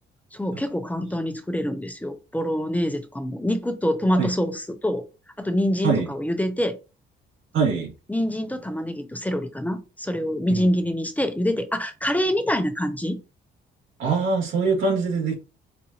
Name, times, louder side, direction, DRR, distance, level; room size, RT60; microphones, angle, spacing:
voice 1, 0.3-5.1 5.4-6.8 8.1-13.2, equal, 10° left, 0.5 m, -25 dB
voice 2, 7.5-7.9 10.5-10.6 14.0-15.3, right 4 dB, 80° right, 2.3 m, -23 dB
5.1 x 2.5 x 2.8 m
cardioid pair, 90°, 20 cm